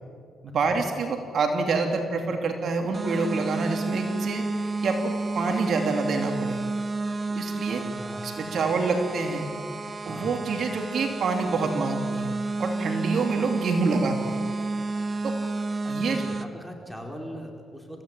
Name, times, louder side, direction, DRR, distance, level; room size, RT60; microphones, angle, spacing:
voice 1, 0.4-4.5 4.8-6.6 7.3-7.8 8.2-9.5 10.0-12.3 12.6-14.4 15.2-15.3 15.9-16.2, right 4 dB, 60° right, 4 dB, 2.8 m, -27 dB
sound 1, 2.9-16.4, right 3 dB, 35° right, 1.3 m, -31 dB
voice 2, 7.7-8.3 10.1-10.3 15.8-18.0, equal, 5° right, 1 dB, 4.8 m, -40 dB
28.0 x 16.0 x 9.0 m, 2.3 s
cardioid pair, 90°, 0 cm